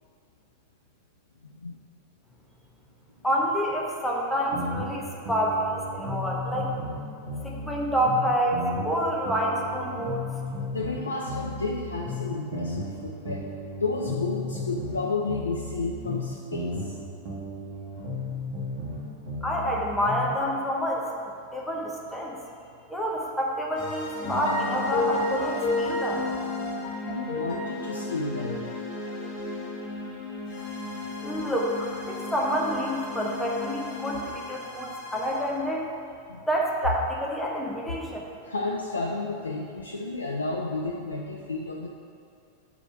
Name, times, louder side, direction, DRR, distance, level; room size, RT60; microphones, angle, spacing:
voice 1, 1.4-1.8 8.4-8.6 10.7-13.5 13.8-17.0 27.0-28.6 30.1-31.2 36.3-36.4 38.4-41.9, left 3 dB, 75° left, -1 dB, 0.5 m, -32 dB
voice 2, 3.2-6.7 7.4-8.6 8.8-10.2 19.4-21.1 21.5-22.4 22.9-26.2 31.2-35.9 36.5-38.2, equal, 5° left, -3 dB, 0.9 m, -28 dB
sound 1, 4.5-7.0 7.3-11.0 11.3-15.0 15.3-19.0 19.3-20.3, left 1 dB, 45° right, 1.6 m, -34 dB
sound 2, 23.8-35.6, left 2 dB, 45° left, 1.3 m, -32 dB
4.9 x 4.9 x 5.7 m, 2.5 s
figure-of-eight pair, 90°, 0 cm